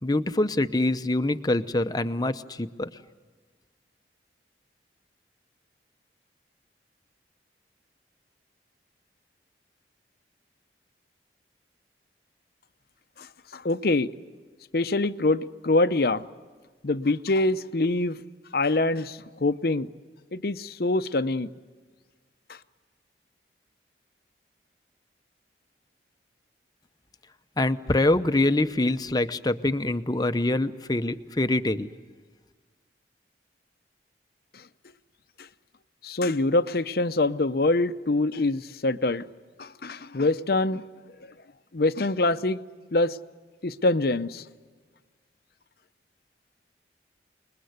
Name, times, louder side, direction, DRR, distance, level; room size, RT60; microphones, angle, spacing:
voice 1, 0.0-2.9 27.6-31.9, left 2 dB, 20° left, 0.8 m, -25 dB
voice 2, 13.5-14.1 14.7-16.2 16.8-18.2 18.5-19.9 20.3-21.5 36.0-39.2 39.6-40.8 41.7-42.6 42.9-43.2 43.6-44.4, left 2 dB, 55° left, 0.7 m, -24 dB
28.5 x 21.0 x 8.1 m
head